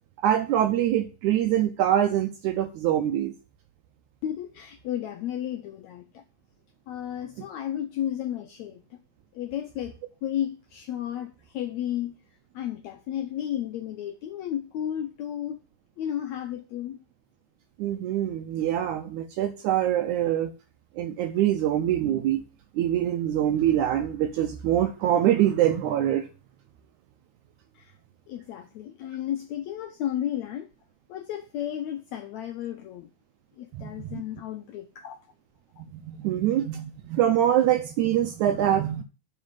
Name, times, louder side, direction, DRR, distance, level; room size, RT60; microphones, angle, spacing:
voice 1, 0.2-3.3 17.8-20.5 21.0-22.4 22.8-26.3 33.7-34.2 36.0-39.0, right 11 dB, 80° right, 1.7 m, -24 dB
voice 2, 4.2-6.2 6.9-9.0 9.3-12.2 12.5-15.6 16.0-17.0 27.7-27.9 28.3-30.7 31.1-33.1 33.6-35.3 35.8-35.9, left 11 dB, 85° left, 1.6 m, -33 dB
8.9 x 4.2 x 7.2 m
omnidirectional pair, 4.0 m